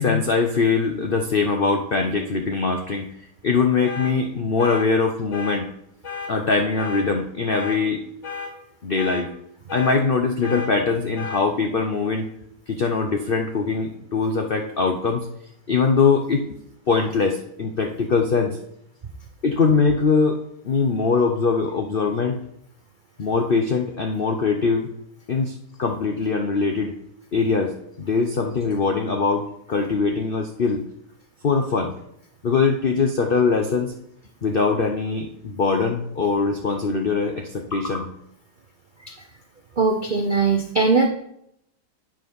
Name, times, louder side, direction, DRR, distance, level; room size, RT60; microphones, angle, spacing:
voice 1, 0.0-3.1 3.4-5.7 6.3-8.0 8.8-9.3 9.7-12.3 12.7-15.3 15.7-16.6 16.9-18.6 19.4-20.4 20.6-22.4 23.2-24.9 25.3-26.9 27.3-30.8 31.4-31.9 32.4-33.9 34.4-38.1, left 4 dB, 85° left, 3 dB, 0.4 m, -22 dB
sound 1, 3.8-4.1 4.6-4.8 5.3-5.6 6.0-6.3 6.8-7.0 7.5-7.8 8.2-8.5 9.0-9.2 9.7-10.0 10.4-10.7 11.1-11.4, left 5 dB, 45° left, 1.7 m, -32 dB
voice 2, 39.8-41.1, right 4 dB, 75° right, 3 dB, 0.4 m, -19 dB
8.9 x 4.8 x 5.3 m, 0.74 s
omnidirectional pair, 2.0 m